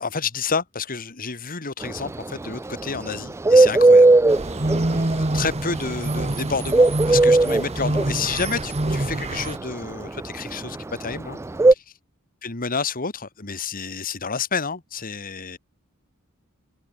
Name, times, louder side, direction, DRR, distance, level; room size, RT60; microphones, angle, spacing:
voice 1, 0.0-4.1 4.6-11.4 11.7-11.8 12.4-15.6, left 5 dB, 40° left, 1.7 m, -30 dB
Bird, 1.8-11.7, right 2 dB, 10° right, 0.3 m, -16 dB
sound 1, 4.3-9.6, right 2 dB, 30° right, 1.1 m, -26 dB
head